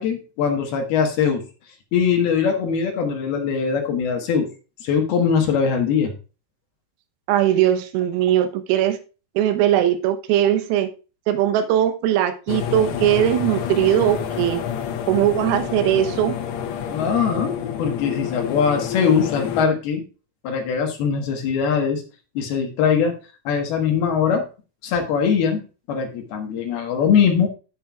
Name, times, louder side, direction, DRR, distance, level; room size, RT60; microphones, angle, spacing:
voice 1, 0.0-1.4 1.9-4.5 4.8-6.1 16.9-20.1 20.4-22.0 22.4-23.2 23.5-24.5 24.8-27.5, left 6 dB, 70° left, 3 dB, 2.6 m, -21 dB
voice 2, 7.3-9.0 9.4-10.9 11.3-14.6 15.1-16.4, right 11 dB, 85° right, 9 dB, 3.6 m, -20 dB
sound 1, 12.5-19.7, left 9 dB, 85° left, 2.3 m, -28 dB
14.5 x 5.5 x 2.3 m, 0.33 s
omnidirectional pair, 6.0 m